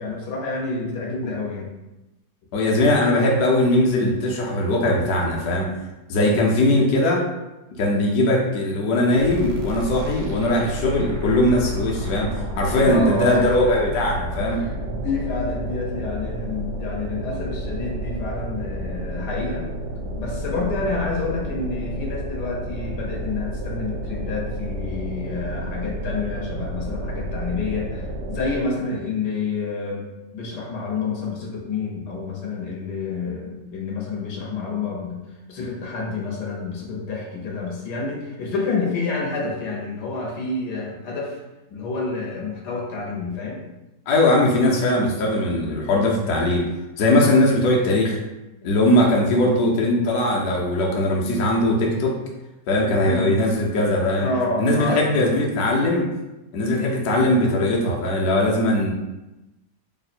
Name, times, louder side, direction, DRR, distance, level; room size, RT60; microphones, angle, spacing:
voice 1, 0.0-1.7 6.2-6.6 8.1-8.3 12.4-12.5 12.7-13.7 14.4-19.7 20.2-30.1 30.3-35.2 35.5-41.4 41.7-43.6 53.0-53.4 54.2-55.3 56.6-56.9, left 3 dB, 90° left, -2 dB, 1.4 m, -28 dB
voice 2, 2.5-5.7 6.1-7.2 7.8-14.6 44.1-46.6 47.0-48.2 48.6-52.2 52.7-54.3 54.6-56.1 56.5-58.9, left 1 dB, 70° left, -2 dB, 1.1 m, -20 dB
sound 1, 9.2-28.8, right 1 dB, 85° right, 1.2 m, -31 dB
3.5 x 2.1 x 4.1 m, 1.0 s
omnidirectional pair, 1.7 m